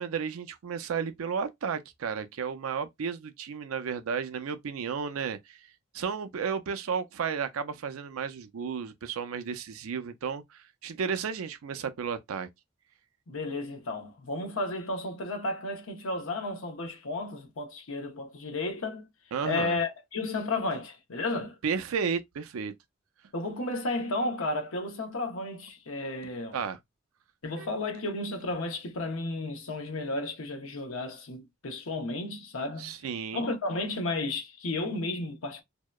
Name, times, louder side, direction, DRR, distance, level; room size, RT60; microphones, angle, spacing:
voice 1, 0.0-5.6 5.9-12.5 19.3-19.8 21.6-22.7 26.5-26.8 27.6-27.7 32.8-33.5, right 6 dB, 85° right, 0.4 m, -33 dB
voice 2, 13.3-19.1 19.4-21.6 23.3-26.6 27.4-32.9 33.3-35.6, left 2 dB, 75° left, 0.7 m, -33 dB
2.7 x 2.1 x 2.2 m
head